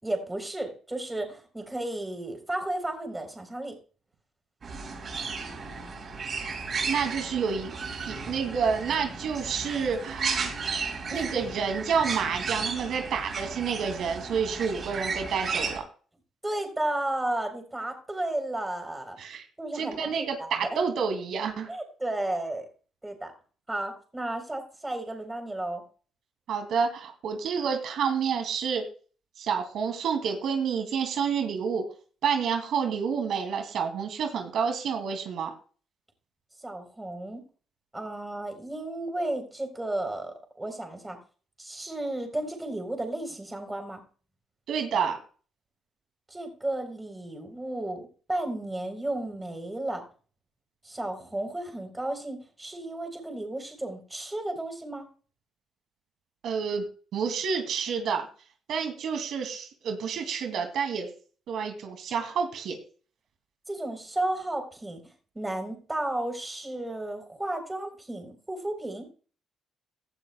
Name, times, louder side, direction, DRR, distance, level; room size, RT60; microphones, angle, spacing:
voice 1, 0.0-3.8 11.1-11.3 16.4-19.2 19.6-20.8 21.7-22.6 23.0-23.3 23.7-25.8 36.6-37.4 37.9-41.2 41.6-44.0 46.3-50.0 50.8-55.1 63.7-69.1, right 1 dB, 15° right, 5 dB, 3.8 m, -33 dB
sound 1, 4.6-15.8, right 4 dB, 45° right, 7.1 m, -34 dB
voice 2, 6.8-7.8 8.1-10.5 11.1-15.8 19.2-19.4 19.7-21.7 26.5-28.8 29.4-31.8 32.2-35.5 44.7-45.2 56.4-56.8 57.1-58.3 58.7-61.1 61.5-62.8, right 6 dB, 75° right, 5 dB, 2.5 m, -29 dB
17.0 x 12.0 x 2.3 m, 0.40 s
cardioid pair, 90°, 0 cm